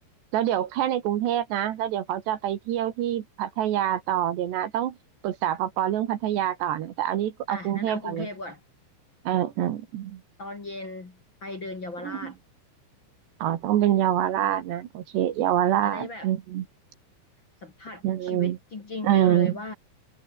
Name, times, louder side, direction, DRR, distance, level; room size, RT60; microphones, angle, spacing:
voice 1, 0.3-5.0 5.2-8.3 9.3-10.2 12.0-12.3 13.4-16.7 18.0-18.6 19.0-19.5, right 11 dB, 70° right, 3.6 m, -26 dB
voice 2, 7.5-8.6 10.4-12.4 15.8-16.3 17.6-19.7, left 2 dB, 30° left, 2.9 m, -37 dB
omnidirectional pair, 5.4 m